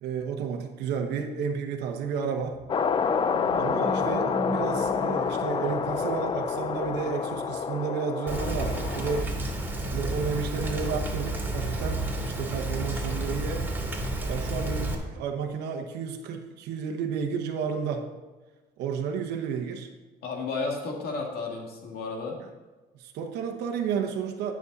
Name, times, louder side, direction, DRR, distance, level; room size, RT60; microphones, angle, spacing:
voice 1, 0.0-2.6 3.6-9.3 9.9-13.7 14.3-18.1 18.8-19.9 22.9-24.5, right 6 dB, 80° right, 3 dB, 1.0 m, -32 dB
sound 1, 2.4-7.8, right 1 dB, 45° right, 2.0 m, -39 dB
sound 2, 2.7-9.2, left 6 dB, 30° left, 0.4 m, -28 dB
Rain, 8.3-14.9, right 1 dB, 10° right, 2.3 m, -31 dB
voice 2, 20.2-22.4, left 4 dB, 65° left, 0 dB, 2.1 m, -32 dB
9.6 x 7.2 x 4.1 m, 1.2 s
cardioid pair, 110°, 17 cm